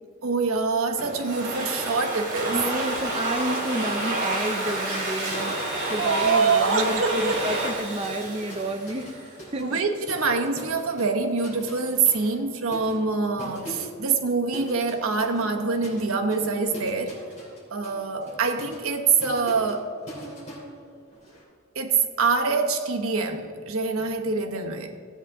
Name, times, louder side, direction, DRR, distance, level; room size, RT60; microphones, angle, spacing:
voice 1, 0.2-2.6 6.0-7.4 9.6-17.1 17.7-19.9 21.7-24.9, right 4 dB, 85° right, 5 dB, 1.0 m, -25 dB
Domestic sounds home sounds, 1.0-9.4, right 1 dB, 45° right, 3.0 m, -29 dB
voice 2, 2.5-9.8, right 1 dB, 25° right, 4 dB, 0.6 m, -31 dB
sound 1, 2.8-3.1 3.4-6.2 6.5-21.4, right 1 dB, 35° left, 3.1 m, -43 dB
15.5 x 8.6 x 3.6 m, 2.3 s
head